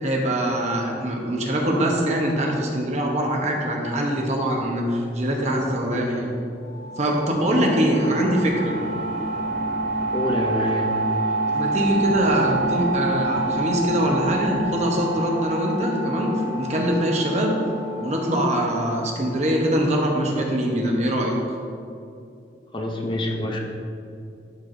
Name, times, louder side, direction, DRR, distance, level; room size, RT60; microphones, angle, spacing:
voice 1, 0.0-6.4 7.0-8.7 11.5-17.5 18.0-21.4, right 1 dB, 40° right, 0 dB, 0.9 m, -23 dB
sound 1, 6.6-20.1, right 2 dB, 70° right, 1.2 m, -28 dB
voice 2, 10.1-11.0 22.7-23.6, left 1 dB, 25° left, 2 dB, 0.5 m, -26 dB
12.0 x 4.6 x 2.6 m, 2.5 s
head